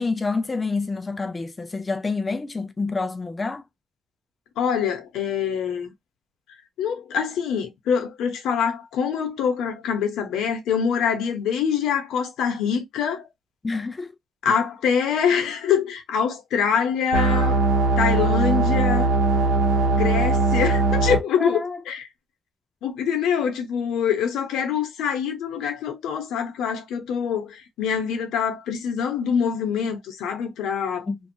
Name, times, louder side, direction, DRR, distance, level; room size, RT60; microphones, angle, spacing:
voice 1, 0.0-3.6 13.6-14.1 21.4-21.8 31.1-31.2, left 3 dB, 25° left, 0.3 m, -27 dB
voice 2, 4.6-5.9 6.8-13.2 14.4-17.6 18.0-19.1 19.9-22.1 22.8-31.1, left 7 dB, 80° left, 0.8 m, -25 dB
sound 1, 17.1-21.2, right 3 dB, 80° right, 0.7 m, -20 dB
2.6 x 2.3 x 2.6 m
cardioid pair, 90°, 0 cm